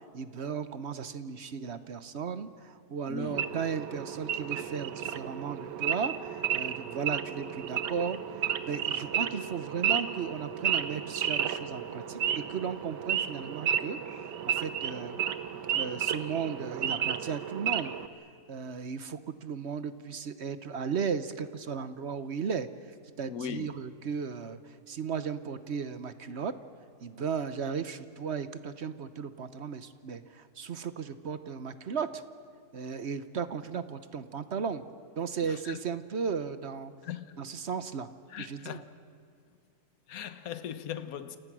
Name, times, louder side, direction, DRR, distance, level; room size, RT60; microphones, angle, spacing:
voice 1, 0.0-8.2 8.7-12.2 12.5-14.0 14.4-15.2 15.7-17.9 18.5-22.7 23.2-26.5 27.0-32.2 32.7-34.8 35.2-36.9 37.4-38.1 38.4-38.8, right 6 dB, 50° right, 1.0 m, -35 dB
voice 2, 3.1-3.4 23.3-23.7 35.5-35.8 37.0-37.2 38.3-38.8 40.1-41.4, left 8 dB, 60° left, 1.5 m, -38 dB
Wild animals / Idling, 3.3-18.1, right 9 dB, 85° right, 1.6 m, -32 dB
29.0 x 27.5 x 6.2 m
omnidirectional pair, 1.8 m